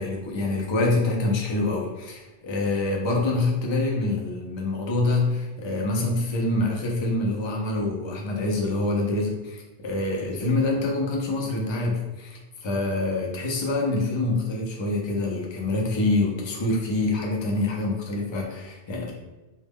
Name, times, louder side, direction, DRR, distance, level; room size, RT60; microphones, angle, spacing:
voice 1, 0.0-19.1, left 2 dB, 40° left, -1 dB, 0.4 m, -26 dB
2.2 x 2.1 x 3.4 m, 1.1 s
omnidirectional pair, 1.0 m